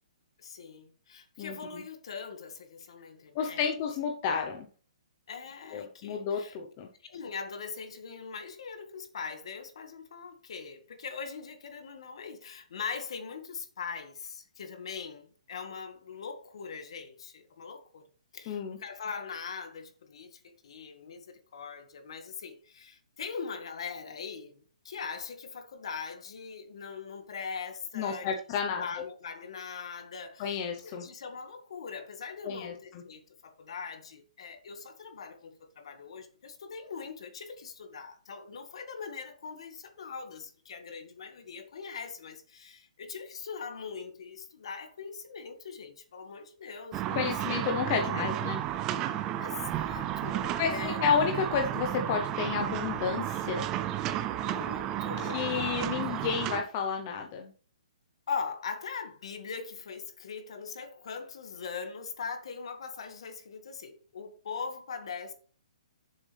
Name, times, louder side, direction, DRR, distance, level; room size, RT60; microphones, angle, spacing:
voice 1, 0.4-3.7 5.3-6.6 7.0-28.3 28.8-30.6 31.0-47.3 47.7-48.3 49.1-51.0 54.4-56.3 58.3-65.3, left 5 dB, 50° left, 1.8 m, -41 dB
voice 2, 1.4-1.8 3.3-4.7 5.7-6.9 18.5-18.8 27.9-28.8 30.4-31.0 32.4-33.0 47.1-48.6 50.6-53.7 55.2-57.5, left 6 dB, 20° left, 0.8 m, -31 dB
sound 1, 46.9-56.6, right 12 dB, 15° right, 0.4 m, -32 dB
10.5 x 7.4 x 3.4 m
hypercardioid pair, 175°, 4 cm